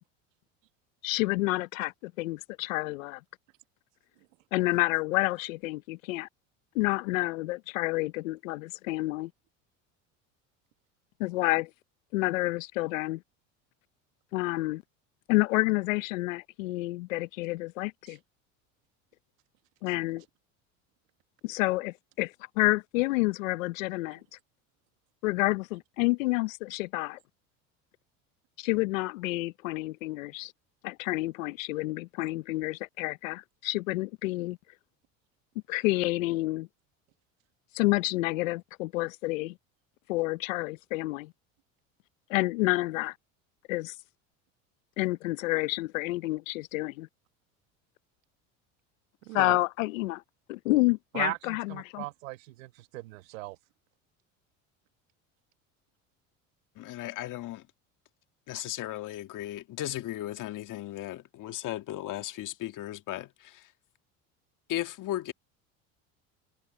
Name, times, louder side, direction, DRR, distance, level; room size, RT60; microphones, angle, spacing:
voice 1, 1.0-3.2 4.5-6.3 6.7-9.3 11.2-11.7 12.1-13.2 14.3-14.8 15.3-18.2 19.8-20.2 21.4-24.2 25.2-27.2 28.6-30.5 30.8-34.6 35.7-36.7 37.7-39.5 40.1-41.3 42.3-43.1 43.7-44.0 45.0-47.1 49.3-50.2 50.5-52.0, left 21 dB, 80° left, 0.9 m, -29 dB
voice 2, 49.2-49.6 51.1-53.6, right 21 dB, 80° right, 1.5 m, -38 dB
voice 3, 56.8-57.7 58.5-63.7 64.7-65.3, left 14 dB, 50° left, 1.9 m, -36 dB
hypercardioid pair, 85°, 39 cm